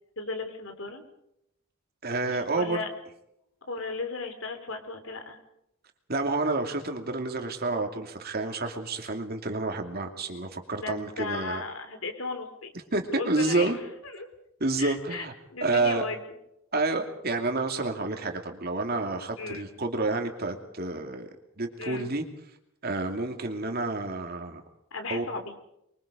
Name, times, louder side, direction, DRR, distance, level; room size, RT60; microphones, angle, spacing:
voice 1, 0.2-1.0 2.3-2.9 3.7-5.4 10.8-12.7 13.1-13.7 14.0-14.3 14.8-16.2 19.4-19.6 21.8-22.1 24.9-25.5, left 3 dB, 75° left, 6 dB, 3.5 m, -36 dB
voice 2, 2.0-2.8 6.1-11.6 12.9-13.8 14.6-15.3 15.6-16.1 16.7-21.3 21.6-22.2 22.8-24.6 25.1-25.3, right 2 dB, 50° right, 4 dB, 2.6 m, -29 dB
24.5 x 23.5 x 5.2 m, 0.81 s
head